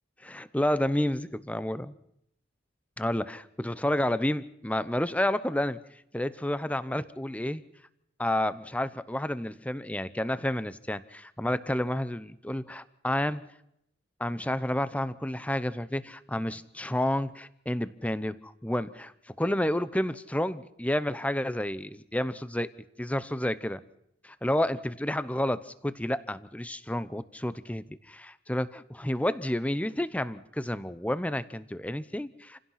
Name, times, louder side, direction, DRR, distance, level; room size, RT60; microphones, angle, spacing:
voice 1, 0.2-1.9 3.0-5.8 6.1-7.6 8.2-13.4 14.2-19.1 19.4-22.7 23.0-23.8 24.2-32.6, left 1 dB, 5° left, 15 dB, 0.8 m, -30 dB
28.5 x 17.0 x 5.8 m, 0.76 s
head